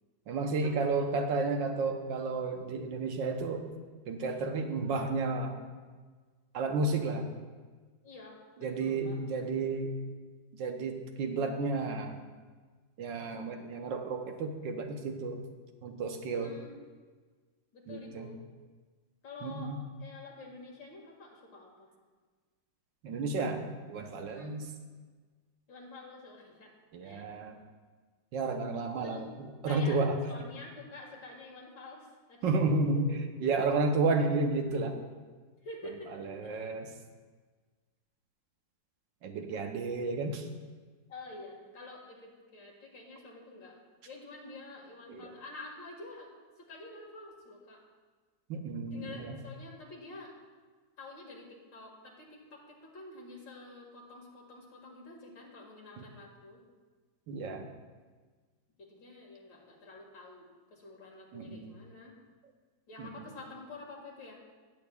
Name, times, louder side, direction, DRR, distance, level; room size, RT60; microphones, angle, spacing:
voice 1, 0.3-3.6 4.1-5.5 6.5-7.3 8.6-9.9 10.6-12.2 13.0-15.4 15.8-16.5 17.9-18.3 19.4-19.8 23.0-24.6 26.9-27.6 28.3-30.2 32.4-33.1 33.4-35.0 36.2-36.9 39.2-40.5 45.1-45.3 48.5-49.4 56.0-56.1 57.3-57.7 61.3-61.8 63.0-63.1, right 3 dB, 85° right, 4 dB, 1.6 m, -32 dB
voice 2, 8.0-9.2 16.3-16.7 17.7-18.4 19.2-21.9 24.3-24.6 25.7-26.7 27.0-27.3 29.0-29.2 29.6-30.0 30.3-32.5 32.9-33.2 35.6-36.1 36.4-36.7 41.1-43.8 44.0-46.3 46.6-47.8 48.9-50.3 51.0-51.5 51.7-56.6 58.8-62.2 62.9-64.4, left 2 dB, 90° left, -2 dB, 2.7 m, -48 dB
17.5 x 8.6 x 2.4 m, 1.4 s
omnidirectional pair, 1.9 m